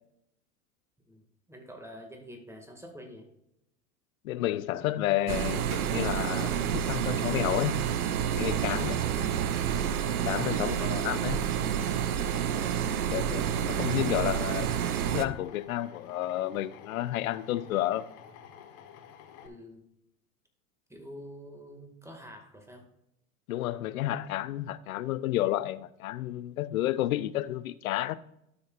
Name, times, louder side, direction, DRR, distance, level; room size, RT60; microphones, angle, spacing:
voice 1, 1.1-3.3 9.1-9.5 10.3-10.7 12.8-13.1 19.4-19.8 20.9-22.9, equal, 5° right, 1.9 m, -47 dB
voice 2, 4.2-7.9 8.4-9.0 10.2-11.4 13.1-18.1 23.5-28.2, left 14 dB, 75° left, 0.6 m, -31 dB
sound 1, 5.3-15.2, right 9 dB, 85° right, 0.7 m, -29 dB
Drill, 13.5-19.5, left 8 dB, 55° left, 1.4 m, -51 dB
12.5 x 6.4 x 2.4 m
hypercardioid pair, 90°, 42 cm